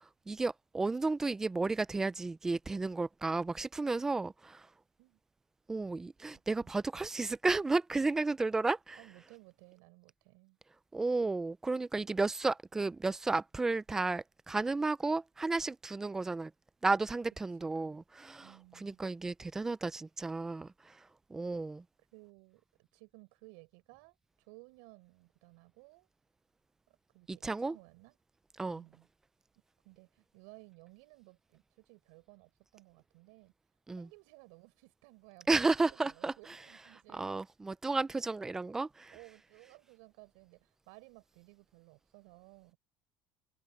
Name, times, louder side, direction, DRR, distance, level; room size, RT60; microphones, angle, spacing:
voice 1, 0.0-4.7 5.7-9.0 10.9-16.5 16.8-21.8 27.3-27.8 28.6-28.8 33.9-34.1 35.5-36.3 37.1-39.1, right 3 dB, 10° right, 0.3 m, -33 dB
voice 2, 8.9-10.6 17.6-18.0 18.4-19.0 22.1-26.1 26.9-28.2 28.6-29.1 29.8-33.5 34.0-37.4 39.1-42.8, right 31 dB, 85° right, 7.3 m, -58 dB
cardioid pair, 170°, 5 cm